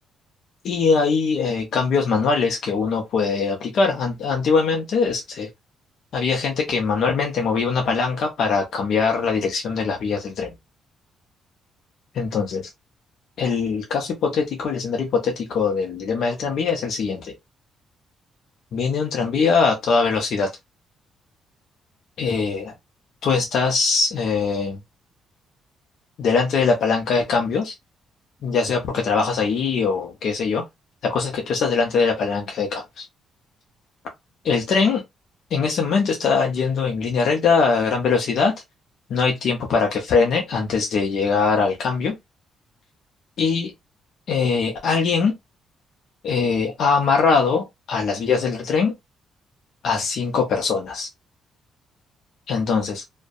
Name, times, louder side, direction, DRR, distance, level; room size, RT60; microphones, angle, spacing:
voice 1, 0.6-5.5 6.1-10.5 12.1-12.7 13.4-17.3 18.7-20.5 22.2-22.7 23.2-24.8 26.2-27.7 28.4-30.6 31.0-33.0 34.4-35.0 35.5-38.5 39.1-42.2 43.4-43.7 44.3-45.3 46.2-48.9 49.8-51.1 52.5-53.0, left 5 dB, 65° left, 0.5 m, -22 dB
2.5 x 2.1 x 2.3 m
cardioid pair, 90°, 0 cm